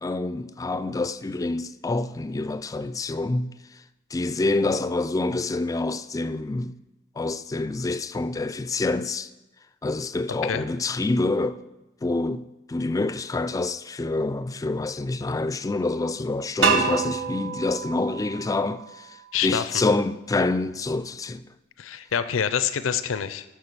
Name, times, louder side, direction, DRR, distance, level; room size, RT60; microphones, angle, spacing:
voice 1, 0.0-3.5 4.1-6.8 7.2-9.3 9.8-11.6 12.0-19.1 19.4-21.5, left 2 dB, 15° left, 0.3 m, -27 dB
sound 1, 16.6-19.5, right 5 dB, 70° right, 1.1 m, -27 dB
voice 2, 19.3-19.8 21.8-23.4, left 8 dB, 85° left, 0.5 m, -26 dB
8.4 x 6.2 x 6.7 m
head